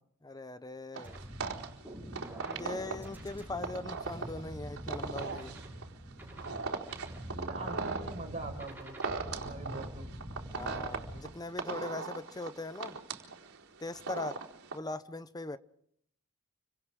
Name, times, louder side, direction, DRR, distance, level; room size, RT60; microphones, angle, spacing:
voice 1, 0.2-1.2 2.5-5.5 10.5-13.0 13.8-14.4 14.7-15.6, left 2 dB, 15° left, 0.8 m, -40 dB
sound 1, 0.9-14.8, right 4 dB, 65° right, 4.5 m, -39 dB
sound 2, 1.0-11.2, equal, 10° right, 6.9 m, -45 dB
voice 2, 7.3-9.0 9.3-10.1, right 2 dB, 30° right, 5.5 m, -43 dB
30.0 x 25.5 x 3.8 m
head